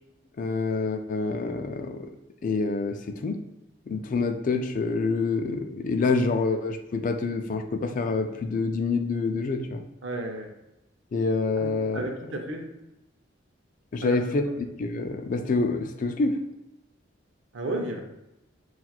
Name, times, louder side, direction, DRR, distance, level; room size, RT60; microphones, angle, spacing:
voice 1, 0.4-2.1 2.4-3.4 3.9-9.8 11.1-12.1 13.9-16.4, left 3 dB, 45° left, 6 dB, 0.3 m, -27 dB
voice 2, 10.0-10.5 11.6-12.7 14.0-14.2 17.5-18.0, right 2 dB, 75° right, 3 dB, 0.6 m, -33 dB
5.8 x 2.3 x 2.3 m, 0.90 s
head